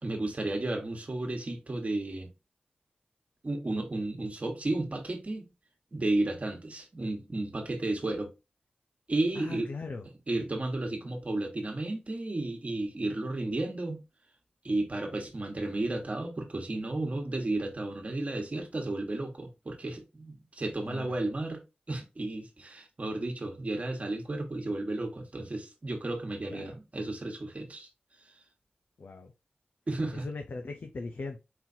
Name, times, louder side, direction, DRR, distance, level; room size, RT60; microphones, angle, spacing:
voice 1, 0.0-2.3 3.4-5.5 5.9-8.3 9.1-9.7 10.3-14.0 14.6-21.6 21.9-27.9 29.9-30.3, right 2 dB, 45° right, 1.4 m, -33 dB
voice 2, 9.4-10.0 20.9-21.1 26.5-26.8 29.0-29.3 30.2-31.4, left 3 dB, 70° left, 0.7 m, -39 dB
4.5 x 4.0 x 2.7 m
wide cardioid pair, 65°, 3 cm